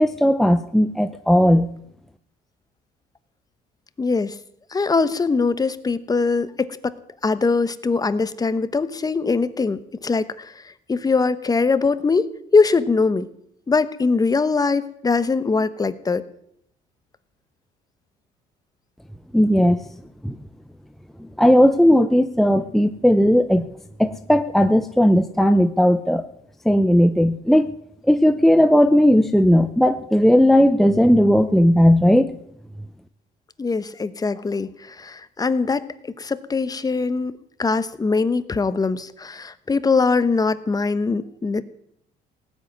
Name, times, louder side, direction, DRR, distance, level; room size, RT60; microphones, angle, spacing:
voice 1, 0.0-1.7 19.3-19.8 20.2-20.3 21.4-23.7 24.0-26.2 26.7-27.7 28.1-32.4, equal, ahead, 9 dB, 0.7 m, -16 dB
voice 2, 4.0-4.3 4.7-6.9 7.2-10.5 10.9-12.3 12.5-13.3 13.7-16.2 33.6-35.9 36.2-37.3 37.6-41.6, left 4 dB, 20° left, 14 dB, 1.0 m, -22 dB
17.5 x 7.8 x 9.6 m, 0.72 s
cardioid pair, 110°, 17 cm